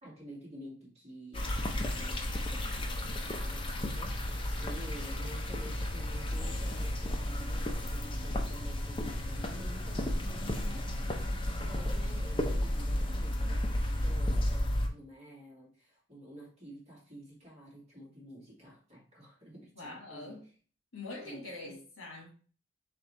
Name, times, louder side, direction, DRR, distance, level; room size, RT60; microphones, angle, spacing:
voice 1, 0.0-14.5 14.9-20.4 21.2-21.8, equal, 30° right, 2.1 m, -50 dB
sound 1, 1.3-14.9, left 1 dB, 25° left, 0.5 m, -33 dB
voice 2, 19.7-20.5 20.9-22.3, left 2 dB, 80° left, 1.6 m, -44 dB
4.3 x 3.6 x 3.1 m
head